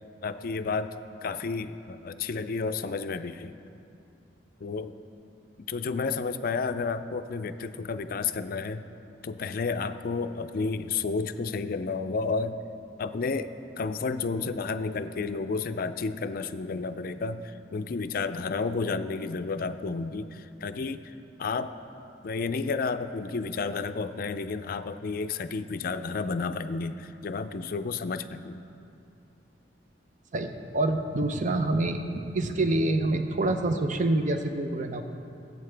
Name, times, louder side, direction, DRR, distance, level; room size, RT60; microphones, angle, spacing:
voice 1, 0.2-1.0 1.2-3.6 4.6-4.9 5.7-8.8 9.2-12.6 13.0-13.5 13.8-21.8 22.2-28.6, left 4 dB, 50° left, 11 dB, 0.4 m, -31 dB
voice 2, 30.3-35.0, right 2 dB, 45° right, 6 dB, 0.6 m, -27 dB
18.0 x 8.2 x 3.4 m, 2.7 s
head